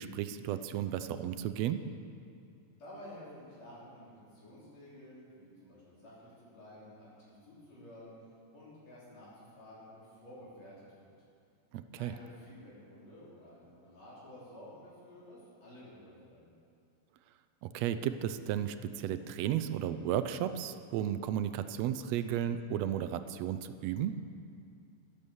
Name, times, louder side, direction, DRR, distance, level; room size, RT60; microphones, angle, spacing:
voice 1, 0.0-1.9 11.7-12.1 17.6-24.2, right 10 dB, 75° right, 11 dB, 1.6 m, -34 dB
voice 2, 2.8-8.1 8.5-11.1 12.0-16.5, left 1 dB, 65° left, -8 dB, 4.6 m, -52 dB
12.0 x 11.0 x 7.0 m, 2.4 s
omnidirectional pair, 3.3 m